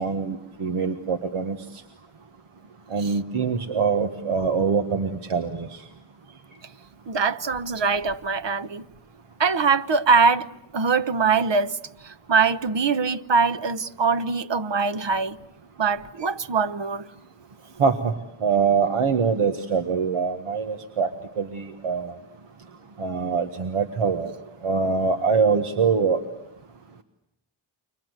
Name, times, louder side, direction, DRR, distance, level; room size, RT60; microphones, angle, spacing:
voice 1, 0.0-1.6 2.9-5.8 17.8-18.1 18.4-21.1 21.4-22.1 23.0-24.3 24.6-26.2, right 5 dB, 90° right, 1.6 m, -24 dB
voice 2, 7.1-8.8 9.4-10.5 10.7-11.8 12.0-15.4 15.8-17.1, right 5 dB, 60° right, 1.2 m, -22 dB
29.5 x 25.0 x 8.1 m
cardioid pair, 50°, 49 cm